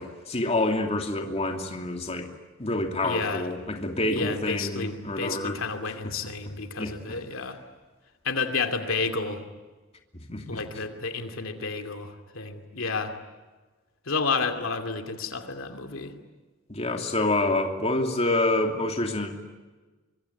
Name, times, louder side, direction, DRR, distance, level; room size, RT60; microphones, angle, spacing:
voice 1, 0.0-2.3 2.6-5.6 6.8-6.9 10.3-10.6 16.7-19.5, left 2 dB, 30° left, 3 dB, 2.7 m, -27 dB
voice 2, 3.0-3.5 4.1-7.6 8.2-9.4 10.5-13.1 14.1-16.1, left 4 dB, 75° left, 6 dB, 2.6 m, -31 dB
25.0 x 24.5 x 9.8 m, 1.3 s
head